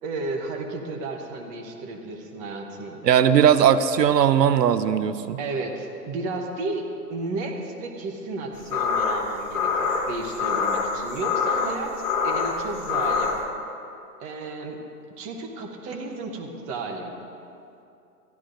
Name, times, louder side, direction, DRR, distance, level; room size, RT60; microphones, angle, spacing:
voice 1, 0.0-3.0 5.4-11.9 12.2-13.3 14.2-14.8 15.2-17.1, right 3 dB, 15° right, 3 dB, 0.9 m, -33 dB
voice 2, 3.0-5.4, right 9 dB, 85° right, 13 dB, 0.8 m, -18 dB
sound 1, 8.6-13.4, left 5 dB, 55° left, 2.9 m, -25 dB
23.5 x 15.0 x 2.6 m, 2.6 s
hypercardioid pair, 150°, 48 cm